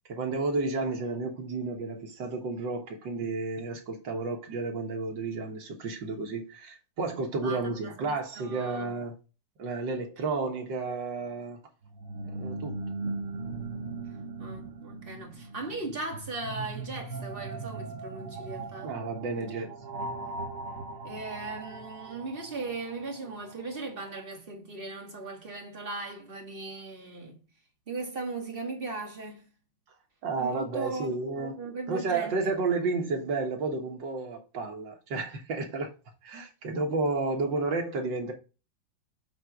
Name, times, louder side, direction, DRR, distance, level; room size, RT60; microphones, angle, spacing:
voice 1, 0.1-9.1 9.6-11.6 12.3-12.8 18.8-19.8 30.2-31.6 31.9-35.9 36.2-38.3, right 3 dB, 65° right, 2.1 m, -31 dB
voice 2, 7.4-8.9 14.4-19.0 19.4-19.5 20.2-20.5 21.0-27.4 27.9-29.5 30.4-32.5, right 3 dB, 30° right, 1.9 m, -38 dB
sound 1, 11.8-23.7, right 3 dB, 45° right, 1.3 m, -39 dB
7.7 x 3.6 x 5.1 m
omnidirectional pair, 2.2 m